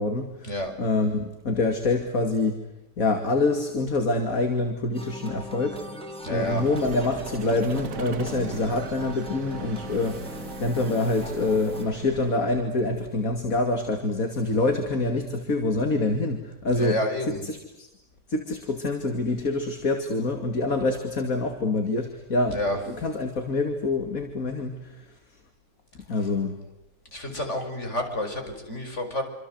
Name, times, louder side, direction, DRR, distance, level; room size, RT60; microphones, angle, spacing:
voice 1, 0.0-2.6 3.0-5.8 6.3-17.0 17.3-17.9 18.3-22.6 22.9-25.1 25.9-26.6, left 2 dB, 65° left, 5 dB, 2.9 m, -26 dB
sound 1, 4.9-11.8, left 1 dB, 5° left, 4.8 m, -40 dB
voice 2, 6.2-6.6 16.7-17.4 22.5-22.8 27.1-29.2, left 1 dB, 50° left, 5 dB, 6.1 m, -29 dB
Vehicle, 6.3-12.7, right 6 dB, 90° right, 1.7 m, -39 dB
27.5 x 27.0 x 8.0 m, 0.93 s
omnidirectional pair, 1.6 m